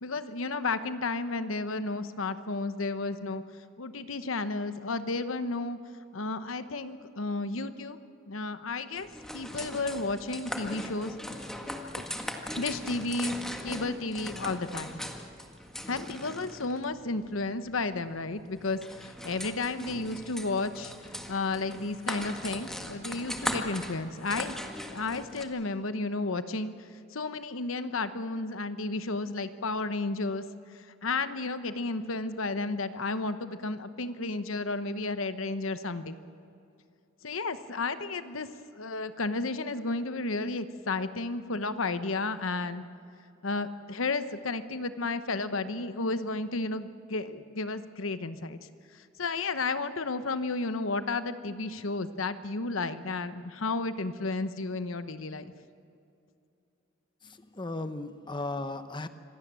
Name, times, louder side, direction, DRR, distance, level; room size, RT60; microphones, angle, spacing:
voice 1, 0.0-3.4 3.8-5.8 6.1-8.0 8.3-9.1 9.3-11.1 12.0-12.1 12.6-13.4 13.6-15.0 15.9-20.9 21.3-24.5 24.9-30.4 31.0-36.2 37.2-38.5 38.8-42.8 43.4-48.6 48.9-55.5, left 3 dB, 80° left, 11 dB, 1.0 m, -32 dB
sound 1, 9.0-25.4, left 1 dB, 5° left, 1.7 m, -39 dB
voice 2, 57.2-59.1, left 2 dB, 25° left, 10 dB, 0.9 m, -36 dB
26.0 x 17.0 x 7.6 m, 2.6 s
head